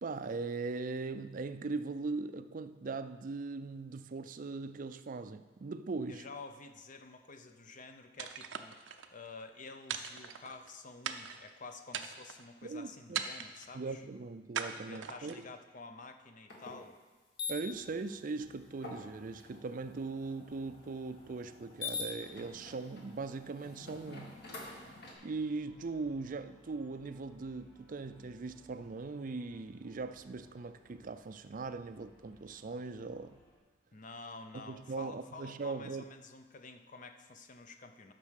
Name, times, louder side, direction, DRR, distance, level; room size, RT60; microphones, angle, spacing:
voice 1, 0.0-6.3 12.6-13.2 13.7-15.5 17.5-24.4 24.8-24.9 25.2-33.4 34.5-36.0, right 3 dB, 45° right, 0.4 m, -40 dB
voice 2, 6.1-14.1 14.9-17.0 33.9-38.1, left 3 dB, 45° left, 0.7 m, -50 dB
sound 1, 8.2-9.1 9.9-10.7 11.0-11.5 11.9-12.5 13.1-13.7 14.5-15.5, right 7 dB, 85° right, 0.6 m, -40 dB
sound 2, 16.5-16.7 17.4-17.5 18.8-25.1, left 4 dB, 60° left, 1.8 m, -45 dB
sound 3, 17.4-33.6, equal, 25° left, 3.2 m, -64 dB
10.5 x 6.1 x 6.5 m
head